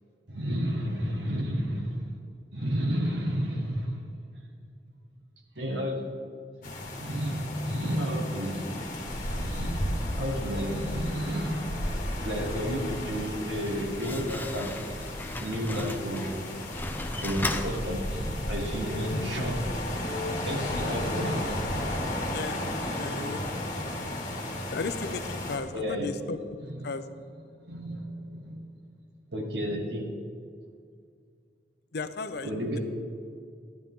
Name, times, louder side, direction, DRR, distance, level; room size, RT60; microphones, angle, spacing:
voice 1, 0.3-2.1 2.5-4.0 5.6-6.0 6.6-8.8 9.3-9.8 10.2-11.7 12.2-14.8 15.4-16.4 17.0-19.6 20.0-21.9 22.2-22.4 23.1-23.2 25.7-26.2 26.6-26.9 27.6-28.6 29.3-30.1 32.4-32.8, equal, 75° right, 1 dB, 1.8 m, -32 dB
sound 1, 6.6-25.6, left 1 dB, 50° left, 1.7 m, -34 dB
voice 2, 12.3-13.0 19.1-19.3 22.3-22.6 23.0-23.5 24.7-26.4 26.8-27.1 31.9-32.5, left 3 dB, 65° left, 10 dB, 0.6 m, -35 dB
Slam, 13.4-18.5, left 2 dB, 10° left, 0.6 m, -37 dB
14.0 x 10.5 x 3.7 m, 2.3 s
head